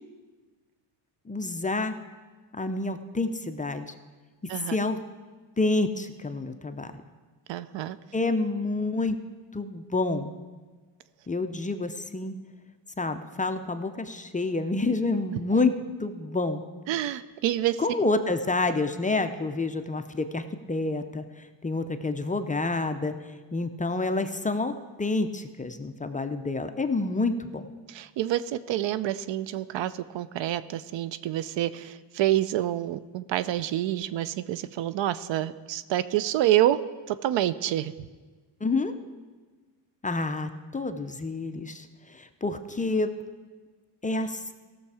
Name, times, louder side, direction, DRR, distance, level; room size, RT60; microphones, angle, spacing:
voice 1, 1.3-2.0 2.5-3.9 4.4-5.0 5.6-6.9 8.1-9.2 9.5-10.3 11.3-12.4 13.0-16.6 17.8-27.7 38.6-38.9 40.0-43.1 44.0-44.5, left 3 dB, 15° left, 8 dB, 0.5 m, -28 dB
voice 2, 7.5-8.0 15.3-15.4 16.9-17.8 27.9-36.8 37.1-37.9, right 13 dB, 70° right, 15 dB, 0.6 m, -27 dB
16.5 x 6.8 x 4.8 m, 1.4 s
cardioid pair, 95°, 47 cm